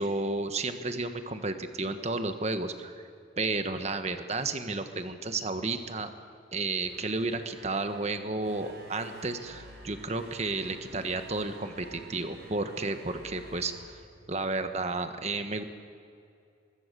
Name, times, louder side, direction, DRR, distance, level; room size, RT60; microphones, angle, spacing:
voice 1, 0.0-3.0 3.4-6.1 6.5-13.7 14.3-15.6, right 3 dB, 35° right, 8 dB, 1.4 m, -32 dB
sound 1, 6.7-14.7, right 1 dB, 55° right, 5.8 m, -51 dB
24.0 x 22.0 x 6.9 m, 2.4 s
head